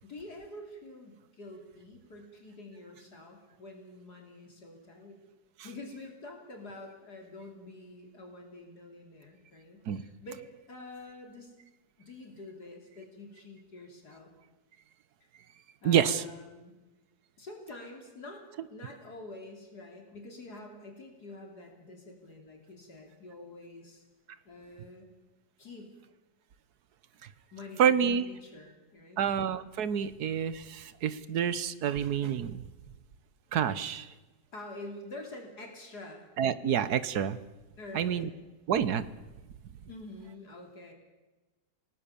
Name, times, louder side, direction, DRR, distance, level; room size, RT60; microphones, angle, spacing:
voice 1, 0.0-5.2 5.6-10.4 10.7-11.5 12.0-14.3 15.8-16.7 17.4-24.0 24.5-25.1 25.6-25.9 27.5-29.3 34.5-36.3 37.8-38.3 39.9-40.9, left 2 dB, 60° left, 2 dB, 3.7 m, -47 dB
voice 2, 15.8-16.2 27.8-28.3 29.2-32.6 33.5-34.1 36.4-37.4 37.9-38.3 38.7-39.0, right 8 dB, 65° right, 15 dB, 1.4 m, -28 dB
27.5 x 18.5 x 7.0 m, 1.1 s
omnidirectional pair, 1.9 m